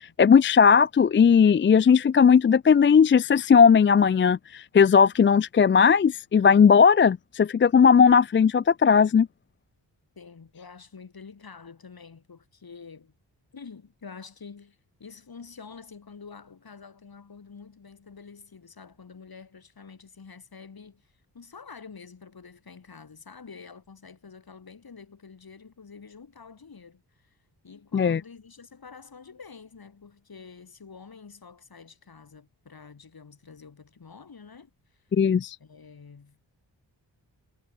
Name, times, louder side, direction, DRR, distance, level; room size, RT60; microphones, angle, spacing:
voice 1, 0.2-9.3 27.9-28.2 35.1-35.6, left 6 dB, 30° left, 0.4 m, -18 dB
voice 2, 10.2-13.1 13.5-27.4 27.6-35.0 35.6-36.5, left 5 dB, 55° left, 4.2 m, -47 dB
cardioid pair, 50°, 43 cm